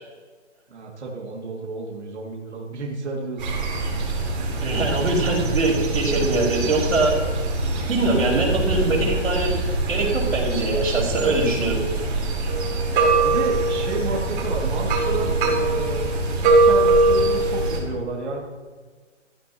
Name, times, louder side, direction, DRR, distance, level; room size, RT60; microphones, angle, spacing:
voice 1, 0.7-3.4 13.2-18.4, right 3 dB, 65° right, -2 dB, 2.6 m, -31 dB
sound 1, 3.4-17.8, right 2 dB, 45° right, 4.0 m, -23 dB
voice 2, 4.6-7.2 7.9-9.5 9.9-11.8, right 2 dB, 90° right, -8 dB, 4.5 m, -22 dB
14.5 x 13.5 x 3.0 m, 1.4 s
hypercardioid pair, 170°, 37 cm